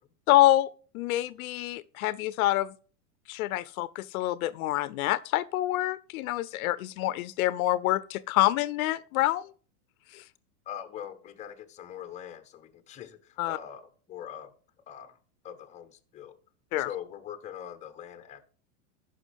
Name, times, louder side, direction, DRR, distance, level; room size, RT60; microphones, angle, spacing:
voice 1, 0.3-2.7 3.3-9.5 10.1-10.2 13.4-13.6 16.7-16.9, left 16 dB, 70° left, 0.5 m, -26 dB
voice 2, 10.7-14.5 14.9-15.2 15.4-16.4 16.8-18.4, left 10 dB, 15° left, 0.7 m, -42 dB
14.5 x 5.7 x 3.4 m
supercardioid pair, 135°, 45 cm